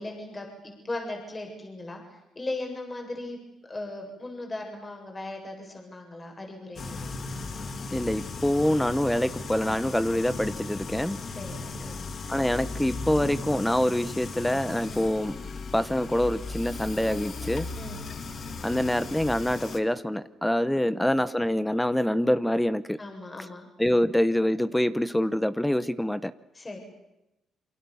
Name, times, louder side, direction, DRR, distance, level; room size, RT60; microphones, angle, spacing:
voice 1, 0.0-2.0 2.3-3.4 3.7-7.3 11.3-12.0 14.9-15.1 17.8-18.0 20.9-21.0 23.0-23.7 26.5-26.8, left 2 dB, 25° left, 2 dB, 7.9 m, -38 dB
sound 1, 6.8-19.8, left 3 dB, 50° left, 2.6 m, -37 dB
voice 2, 7.9-11.2 12.3-15.4 15.7-17.7 18.6-23.0 23.4-23.5 23.8-26.3, left 1 dB, 5° left, 14 dB, 1.0 m, -25 dB
28.0 x 25.0 x 7.2 m, 0.90 s
cardioid pair, 90°, 0 cm